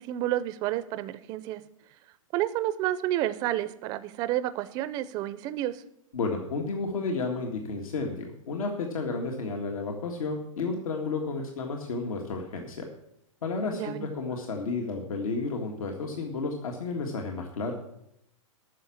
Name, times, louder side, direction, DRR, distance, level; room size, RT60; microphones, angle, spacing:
voice 1, 0.0-1.6 2.3-5.8 13.7-14.1, right 13 dB, 25° right, 13 dB, 0.4 m, -30 dB
voice 2, 6.1-12.9 13.4-17.7, left 3 dB, 85° left, 2 dB, 1.9 m, -32 dB
9.6 x 6.6 x 8.4 m, 0.79 s
hypercardioid pair, 155°, 17 cm